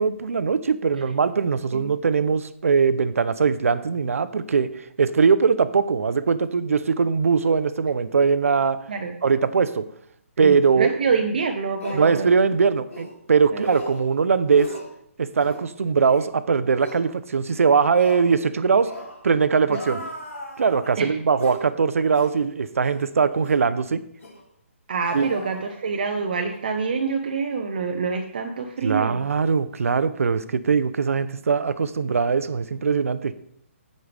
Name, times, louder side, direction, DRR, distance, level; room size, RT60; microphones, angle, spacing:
voice 1, 0.0-4.7 5.0-8.9 9.2-9.9 10.4-10.9 11.9-14.8 15.2-18.9 19.2-20.0 20.6-24.0 25.1-25.3 28.8-33.3, right 5 dB, 80° right, 14 dB, 0.7 m, -21 dB
voice 2, 10.4-12.3 13.5-13.6 19.7-20.0 21.0-21.2 24.9-29.2, right 5 dB, 40° right, 3 dB, 0.7 m, -26 dB
sound 1, 11.1-11.2 11.8-12.1 12.9-13.1 13.6-14.0 14.5-14.9 15.3-15.6 16.1-16.3 16.8-17.0 17.9-18.3 18.8-19.2 19.7-20.9 21.4-21.6 22.1-22.4 22.8-23.0 23.4-23.6 24.2-24.4 25.0-26.1 26.4-26.6, left 1 dB, 70° left, 4.2 m, -37 dB
15.0 x 5.4 x 3.4 m, 0.70 s
hypercardioid pair, 180°, 7 cm